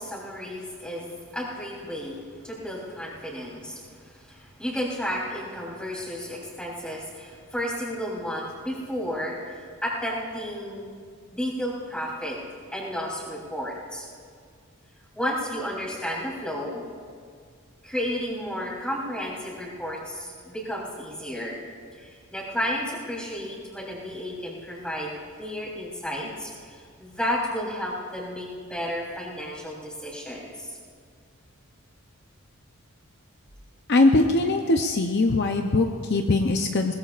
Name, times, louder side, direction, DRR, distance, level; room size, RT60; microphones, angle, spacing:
voice 1, 0.0-2.2 2.4-10.9 11.3-12.4 12.7-14.1 15.1-16.8 17.8-21.6 22.0-30.7, equal, 5° left, -6 dB, 3.4 m, -32 dB
voice 2, 33.9-36.9, left 2 dB, 50° left, 4 dB, 0.6 m, -21 dB
21.5 x 20.0 x 2.5 m, 2.1 s
head